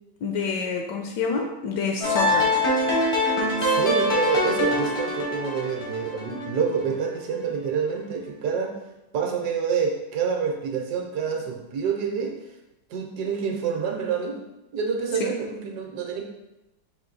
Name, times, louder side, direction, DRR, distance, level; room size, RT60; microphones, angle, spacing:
voice 1, 0.2-2.5 15.2-15.3, left 5 dB, 75° left, 2 dB, 1.1 m, -27 dB
sound 1, 2.0-7.1, left 1 dB, 40° left, 0.4 m, -24 dB
voice 2, 3.6-8.8 9.1-12.4 12.9-14.4 14.7-16.2, right 6 dB, 70° right, 2 dB, 1.1 m, -27 dB
4.4 x 2.6 x 3.9 m, 0.96 s
omnidirectional pair, 2.0 m